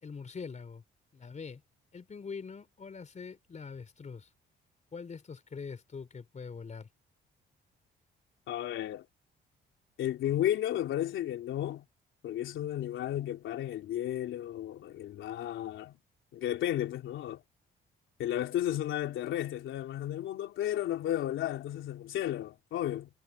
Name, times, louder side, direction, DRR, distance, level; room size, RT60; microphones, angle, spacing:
voice 1, 0.0-0.8 1.1-1.6 1.9-4.3 4.9-6.9, left 5 dB, 35° left, 4.3 m, -43 dB
voice 2, 8.5-9.1 10.0-11.9 12.2-15.9 16.3-17.4 18.2-23.1, left 12 dB, 80° left, 3.5 m, -33 dB
cardioid pair, 90°, 20 cm